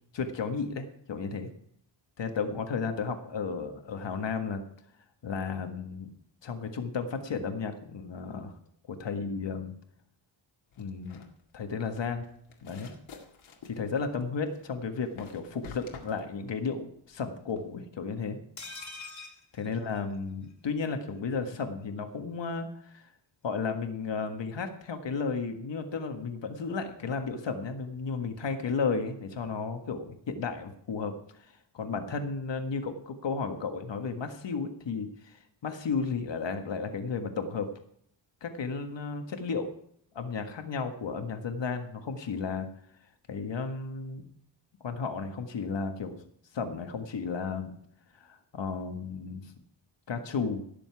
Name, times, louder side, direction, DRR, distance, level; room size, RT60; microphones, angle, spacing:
voice 1, 0.1-1.5 2.2-4.6 5.2-6.1 6.4-8.5 8.9-9.7 10.8-11.2 11.5-12.3 12.6-12.9 13.6-18.4 19.5-22.7 22.9-23.0 23.4-31.1 31.7-35.3 35.6-37.7 38.4-39.7 40.1-42.7 43.3-44.2 44.8-46.2 46.5-47.7 48.2-49.4 50.1-50.6, left 5 dB, 65° left, 6 dB, 1.7 m, -33 dB
sound 1, 10.7-17.7, left 5 dB, 80° left, 2.2 m, -50 dB
sound 2, 18.6-20.5 20.8-20.9 21.2-21.3, left 3 dB, 35° left, 2.3 m, -45 dB
17.0 x 7.0 x 4.8 m, 0.67 s
wide cardioid pair, 120°, 48 cm